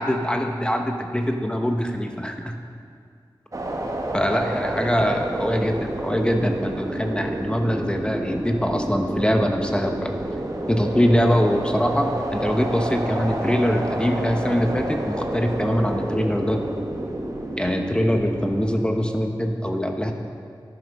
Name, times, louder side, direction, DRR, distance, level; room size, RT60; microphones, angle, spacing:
voice 1, 0.0-2.6 4.1-5.8 6.0-10.1 10.7-16.6 17.6-20.1, equal, 10° left, 4 dB, 0.8 m, -23 dB
sound 1, 3.5-18.9, right 1 dB, 40° right, 1.3 m, -29 dB
11.0 x 9.6 x 5.3 m, 2.3 s
wide cardioid pair, 70°, 8 cm